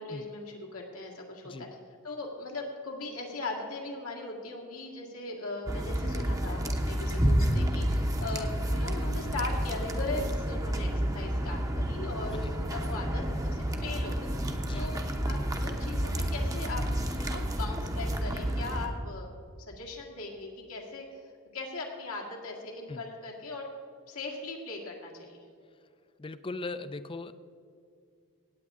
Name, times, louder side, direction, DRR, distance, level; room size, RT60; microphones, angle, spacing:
voice 1, 0.0-1.7 2.0-10.9 11.1-14.3 14.7-16.8 17.2-19.3 19.7-21.1 21.5-23.7 24.1-25.4, left 2 dB, 80° left, -1 dB, 1.9 m, -39 dB
sound 1, 5.7-18.9, equal, 15° right, 0.8 m, -30 dB
voice 2, 26.2-27.3, left 3 dB, 25° left, 13 dB, 0.4 m, -39 dB
17.5 x 8.7 x 3.7 m, 2.3 s
head